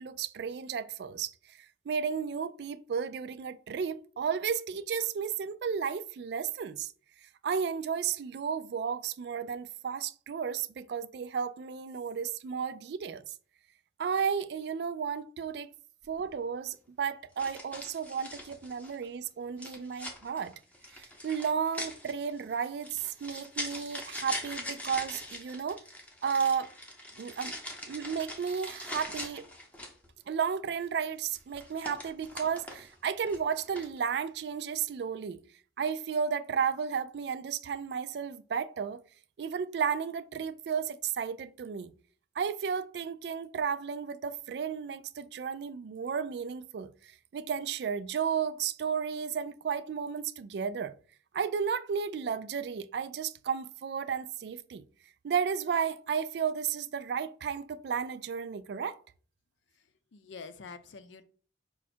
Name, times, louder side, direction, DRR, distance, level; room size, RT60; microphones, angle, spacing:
voice 1, 0.0-1.3 1.9-6.9 7.4-13.2 14.0-15.7 16.1-20.5 20.9-25.8 26.2-26.7 27.2-27.5 27.9-29.5 30.3-35.4 35.8-39.0 39.4-41.9 42.4-46.9 47.3-50.9 51.3-54.8 55.2-59.0, right 6 dB, 60° right, 0.3 m, -33 dB
sound 1, 16.0-16.3 17.4-19.0 19.6-30.1 31.2-32.9 33.3-34.0, left 1 dB, 10° left, 0.7 m, -42 dB
voice 2, 59.7-61.2, left 5 dB, 80° left, 0.5 m, -47 dB
5.3 x 2.4 x 4.2 m
head